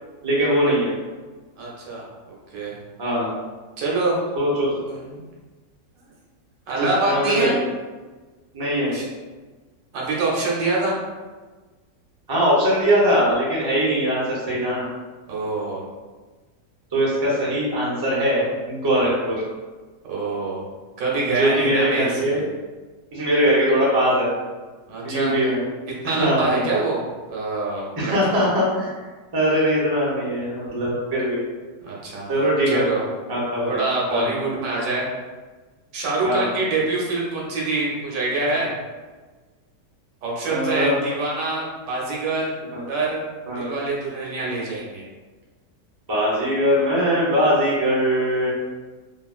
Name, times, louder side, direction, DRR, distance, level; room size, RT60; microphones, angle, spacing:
voice 1, 0.2-0.9 3.0-3.3 4.3-4.7 6.8-7.6 8.5-9.0 12.3-14.8 16.9-19.4 21.3-22.4 23.1-24.3 25.0-25.6 26.0-26.7 28.0-28.9 29.3-31.4 32.3-32.8 33.3-33.7 34.1-34.3 36.2-36.5 40.4-41.0 42.7-42.8 43.5-43.7 46.1-48.5, equal, 30° right, -6 dB, 0.4 m, -21 dB
voice 2, 1.6-2.7 3.8-4.1 4.6-5.2 6.7-7.6 8.9-9.1 9.9-11.0 15.3-15.8 20.1-20.7 21.0-22.4 24.9-25.4 26.0-27.0 27.3-28.4 31.8-32.3 32.7-33.0 33.7-35.1 35.9-38.7 40.2-42.6 42.9-43.2 43.6-45.1, right 3 dB, 85° right, -4 dB, 1.5 m, -25 dB
3.2 x 2.5 x 2.4 m, 1.3 s
omnidirectional pair, 1.9 m